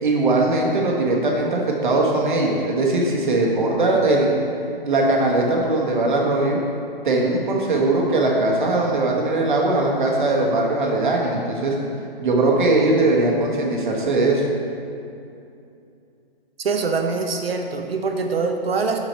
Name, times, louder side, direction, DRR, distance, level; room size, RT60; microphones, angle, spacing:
voice 1, 0.0-4.3 4.8-6.6 7.0-11.7 12.2-14.4, right 2 dB, 55° right, -1 dB, 1.4 m, -20 dB
voice 2, 16.6-19.0, right 4 dB, 75° right, 4 dB, 0.9 m, -24 dB
6.1 x 6.1 x 4.4 m, 2.6 s
hypercardioid pair, 170°, 30 cm